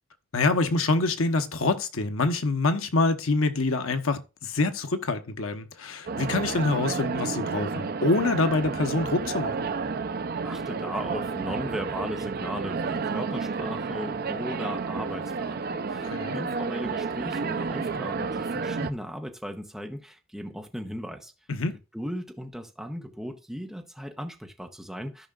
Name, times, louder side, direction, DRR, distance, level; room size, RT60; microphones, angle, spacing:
voice 1, 0.3-9.7 16.0-16.4 21.5-21.8, left 3 dB, 80° left, 1.0 m, -26 dB
sound 1, 6.1-18.9, right 4 dB, 45° right, 0.5 m, -31 dB
voice 2, 10.4-21.3 21.9-25.3, equal, ahead, 1.0 m, -37 dB
14.0 x 5.5 x 2.4 m
head